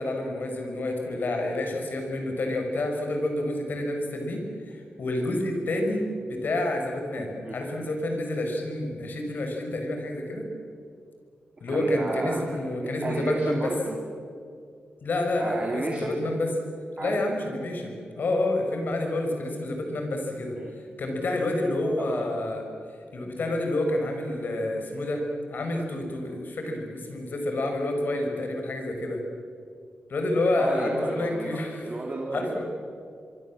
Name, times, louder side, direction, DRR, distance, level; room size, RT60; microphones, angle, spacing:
voice 1, 0.0-10.5 11.6-13.7 15.0-16.5 17.0-22.6 23.1-25.2 25.5-29.2 30.1-31.9 32.3-32.6, left 1 dB, 65° left, 3 dB, 6.1 m, -29 dB
voice 2, 11.7-14.0 15.4-16.2 17.0-17.2 20.6-20.7 22.1-22.2 30.6-32.7, right 2 dB, 35° right, 0 dB, 3.7 m, -32 dB
25.5 x 24.0 x 7.7 m, 2.3 s
cardioid pair, 85°, 4 cm